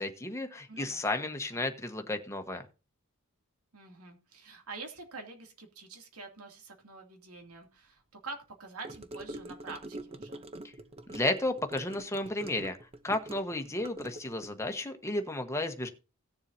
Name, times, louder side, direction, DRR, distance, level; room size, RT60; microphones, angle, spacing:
voice 1, 0.0-2.7 11.1-12.8 13.0-15.9, left 2 dB, 15° left, 6 dB, 1.2 m, -33 dB
voice 2, 0.7-1.4 3.7-10.4, right 3 dB, 80° right, 3 dB, 2.5 m, -46 dB
Gurgling / Car passing by / Sink (filling or washing), 8.8-14.5, right 1 dB, 25° right, 0.8 m, -45 dB
17.5 x 7.2 x 2.7 m, 0.32 s
head